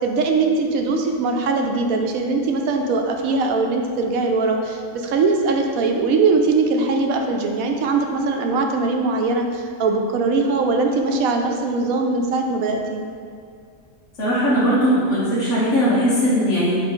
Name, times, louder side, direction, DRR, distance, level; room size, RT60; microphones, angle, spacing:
voice 1, 0.0-13.0, right 3 dB, 90° right, 3 dB, 1.1 m, -21 dB
voice 2, 14.2-16.8, equal, 65° left, -9 dB, 1.6 m, -19 dB
8.9 x 3.2 x 3.8 m, 2.2 s
omnidirectional pair, 1.4 m